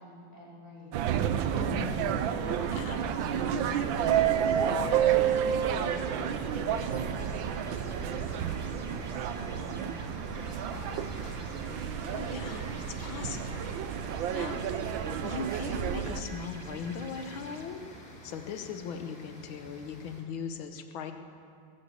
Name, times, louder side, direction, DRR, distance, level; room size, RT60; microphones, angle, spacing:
voice 1, 0.0-1.6 2.4-11.3, left 1 dB, 10° left, -9 dB, 5.3 m, -47 dB
sound 1, 0.9-16.2, right 9 dB, 75° right, 1.4 m, -30 dB
voice 2, 1.5-2.2 2.7-3.0 12.1-13.7 14.3-14.7 15.2-17.8 18.2-21.1, left 6 dB, 85° left, 7 dB, 1.8 m, -39 dB
sound 2, 2.3-20.2, left 1 dB, 45° left, 2.8 m, -50 dB
sound 3, 2.6-17.6, right 2 dB, 35° right, 1.4 m, -48 dB
21.0 x 8.5 x 7.9 m, 2.5 s
omnidirectional pair, 2.2 m